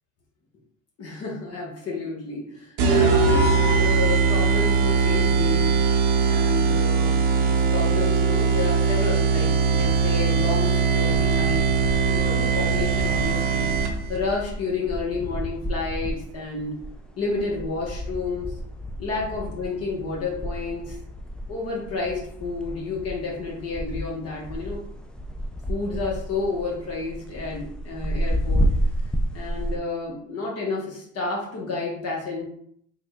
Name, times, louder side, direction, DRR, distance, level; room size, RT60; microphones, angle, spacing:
voice 1, 1.0-5.8 6.2-11.8 12.1-13.7 14.1-16.8 17.2-18.6 19.0-21.0 21.5-24.9 25.7-28.7 29.3-32.4, left 3 dB, 50° left, -3 dB, 1.2 m, -30 dB
sound 1, 2.8-14.2, right 5 dB, 80° right, 0.8 m, -21 dB
sound 2, 11.1-29.8, equal, 5° left, 0.3 m, -31 dB
3.7 x 2.3 x 3.4 m, 0.66 s
supercardioid pair, 100°, 30 cm